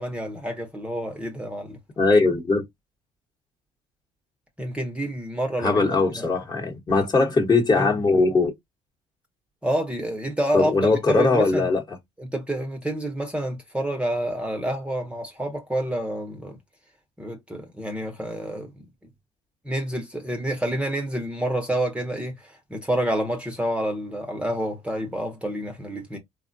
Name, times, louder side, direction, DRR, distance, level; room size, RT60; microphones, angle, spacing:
voice 1, 0.0-1.8 4.6-6.4 6.9-7.1 9.6-11.7 12.2-16.6 17.2-18.7 19.6-26.2, right 1 dB, 10° right, 0.7 m, -28 dB
voice 2, 2.0-2.6 5.6-8.5 10.5-11.8, left 3 dB, 25° left, 1.0 m, -20 dB
3.5 x 2.1 x 2.5 m
cardioid pair, 95°, 15 cm